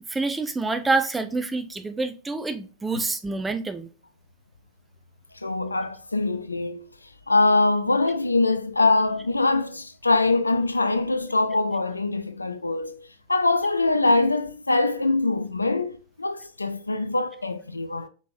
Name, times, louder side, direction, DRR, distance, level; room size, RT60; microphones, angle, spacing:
voice 1, 0.1-3.9, right 3 dB, 10° right, 0.6 m, -27 dB
voice 2, 5.4-6.9 7.3-18.1, left 2 dB, 80° left, 0.4 m, -23 dB
4.6 x 4.1 x 2.6 m
figure-of-eight pair, 90°, 0 cm